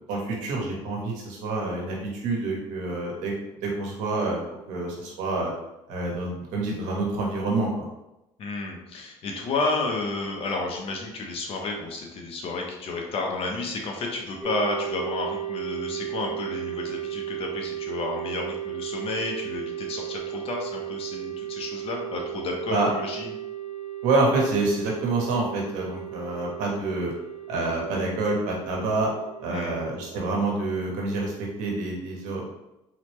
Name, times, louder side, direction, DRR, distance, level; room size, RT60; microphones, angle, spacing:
voice 1, 0.1-3.3 3.6-4.4 4.7-5.5 5.9-7.9 22.7-22.9 24.0-27.1 27.5-29.1 29.4-32.6, right 2 dB, 85° right, -1 dB, 1.3 m, -27 dB
voice 2, 8.4-23.3 29.5-29.9, left 3 dB, 50° left, 1 dB, 1.0 m, -31 dB
sound 1, 14.4-31.8, right 12 dB, 5° left, 0.8 m, -36 dB
3.9 x 3.1 x 3.1 m, 0.92 s
cardioid pair, 120°, 12 cm